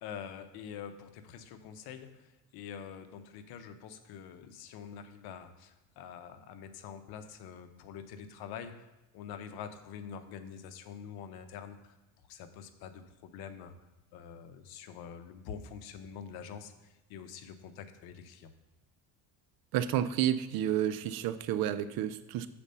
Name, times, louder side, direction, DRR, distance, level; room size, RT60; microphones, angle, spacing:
voice 1, 0.0-8.9 9.1-11.9 12.3-13.7 14.1-18.5, left 7 dB, 65° left, 9 dB, 1.0 m, -46 dB
voice 2, 19.7-22.5, right 11 dB, 60° right, 13 dB, 0.6 m, -30 dB
7.0 x 4.4 x 6.8 m, 1.0 s
supercardioid pair, 105°, 40 cm